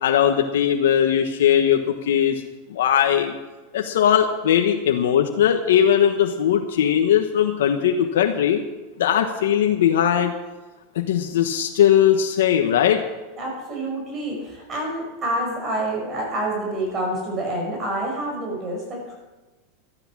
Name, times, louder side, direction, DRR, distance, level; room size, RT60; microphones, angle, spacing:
voice 1, 0.0-2.4 2.7-3.3 3.7-8.6 9.0-10.3 10.9-13.0, left 9 dB, 85° left, 4 dB, 1.3 m, -19 dB
voice 2, 13.3-19.1, right 1 dB, 25° right, -1 dB, 5.5 m, -27 dB
13.0 x 10.5 x 7.4 m, 1.2 s
supercardioid pair, 135°, 0 cm